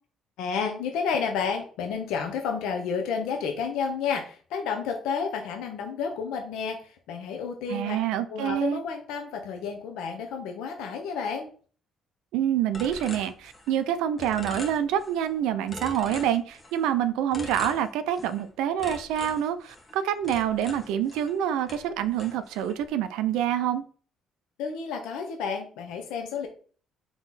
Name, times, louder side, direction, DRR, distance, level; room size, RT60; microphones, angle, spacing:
voice 1, 0.4-8.0 8.3-11.5 24.6-26.5, left 6 dB, 85° left, 3 dB, 0.7 m, -31 dB
voice 2, 7.7-8.8 12.3-23.8, right 10 dB, 85° right, 11 dB, 0.3 m, -27 dB
sound 1, 12.7-13.9 14.2-15.3 15.7-16.9 17.3-18.5 18.8-21.4 21.7-22.9, left 1 dB, 25° left, 1.1 m, -42 dB
3.8 x 3.0 x 4.0 m, 0.43 s
cardioid pair, 85°, 0 cm